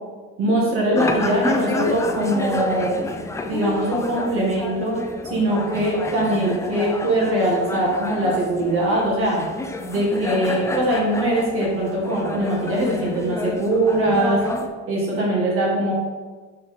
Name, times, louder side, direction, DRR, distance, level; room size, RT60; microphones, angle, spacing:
voice 1, 0.4-3.0 3.5-9.4 9.9-14.4 14.9-15.9, right 1 dB, 50° right, -4 dB, 1.9 m, -21 dB
sound 1, 0.9-14.7, left 2 dB, 10° left, 0.4 m, -30 dB
6.2 x 4.4 x 3.8 m, 1.4 s
cardioid pair, 135°, 29 cm